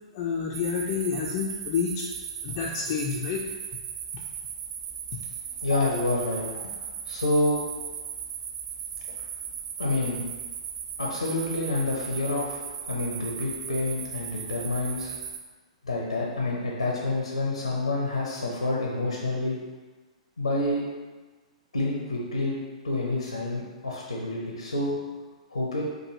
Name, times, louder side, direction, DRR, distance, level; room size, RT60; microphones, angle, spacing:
voice 1, 0.1-2.1 2.4-3.5 4.1-4.2, left 6 dB, 40° left, -2 dB, 0.4 m, -29 dB
sound 1, 0.5-15.4, right 7 dB, 35° right, 0.4 m, -37 dB
voice 2, 5.6-6.4 6.8-7.6 9.8-10.2 11.0-12.6 12.9-15.1 15.8-19.6 20.4-20.8 21.7-22.6 22.8-25.0 25.5-25.8, left 2 dB, 80° left, -3 dB, 0.6 m, -28 dB
4.7 x 2.2 x 2.9 m, 1.3 s
figure-of-eight pair, 105°, 3 cm